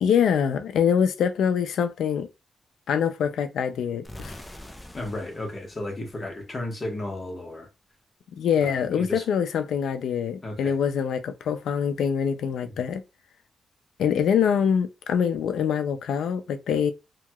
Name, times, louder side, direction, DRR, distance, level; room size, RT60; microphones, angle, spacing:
voice 1, 0.0-2.3 2.9-4.4 8.4-13.0 14.0-16.9, left 7 dB, 85° left, 0.4 m, -24 dB
sound 1, 4.0-6.9, left 1 dB, 10° left, 0.5 m, -45 dB
voice 2, 4.9-7.7 8.6-9.2 10.4-10.7, left 1 dB, 30° left, 1.2 m, -34 dB
2.9 x 2.8 x 2.3 m
cardioid pair, 120°, 0 cm